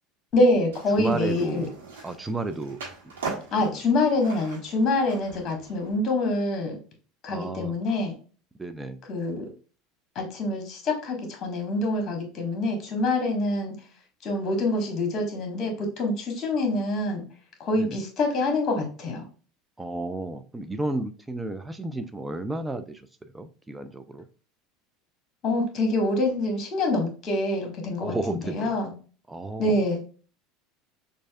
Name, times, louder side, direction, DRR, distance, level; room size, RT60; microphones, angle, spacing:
voice 1, 0.3-1.7 3.5-6.8 7.2-8.1 9.1-9.5 10.1-13.7 14.2-17.2 17.6-19.2 25.4-28.9 29.6-30.0, left 2 dB, 35° left, 3 dB, 1.3 m, -25 dB
Skateboard, 0.7-5.9, right 4 dB, 70° right, 1.3 m, -40 dB
voice 2, 1.0-1.7 2.0-2.8 3.3-3.4 3.7-3.8 7.3-7.7 8.6-9.0 17.8-18.0 19.8-23.0 23.3-24.3 28.0-28.7 29.3-29.8, right 2 dB, 10° right, 9 dB, 0.4 m, -32 dB
6.1 x 2.6 x 2.3 m, 0.38 s
figure-of-eight pair, 75°, 0 cm